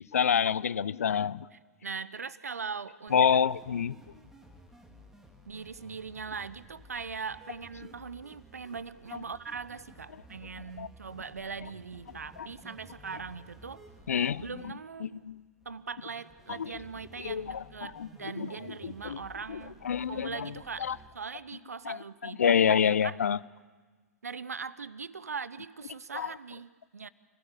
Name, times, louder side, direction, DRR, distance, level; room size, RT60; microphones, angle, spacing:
voice 1, 0.1-1.5 3.1-4.0 10.8-10.9 12.4-12.5 14.1-14.4 15.0-15.4 16.5-16.7 17.2-18.5 18.8-19.2 19.5-19.6 19.8-20.5 20.8-21.0 21.9-22.0 22.2-23.4 26.1-26.3, left 7 dB, 70° left, 20 dB, 0.6 m, -27 dB
voice 2, 1.8-3.2 5.5-13.8 14.4-15.3 15.6-19.8 20.1-20.9 21.1-22.6 22.8-23.2 24.2-27.1, right 5 dB, 75° right, 17 dB, 1.0 m, -40 dB
sound 1, 3.1-21.1, equal, 5° right, 4.1 m, -55 dB
29.0 x 18.0 x 8.4 m, 1.4 s
figure-of-eight pair, 95°, 8 cm